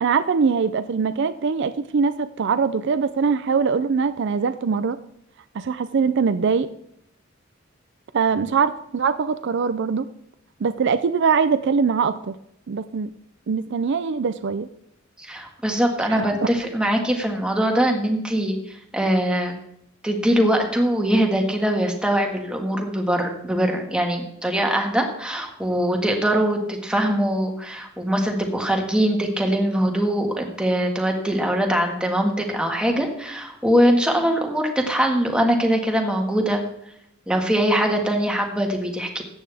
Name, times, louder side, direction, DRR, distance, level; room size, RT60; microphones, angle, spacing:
voice 1, 0.0-5.0 5.5-6.7 8.1-10.1 10.6-12.4 12.7-13.1 13.5-14.7 16.1-16.4, right 5 dB, 60° right, 12 dB, 0.4 m, -22 dB
voice 2, 15.3-18.6 18.9-19.5 20.0-36.6 37.3-39.2, equal, 5° right, 2 dB, 1.6 m, -22 dB
14.0 x 8.9 x 3.5 m, 0.75 s
head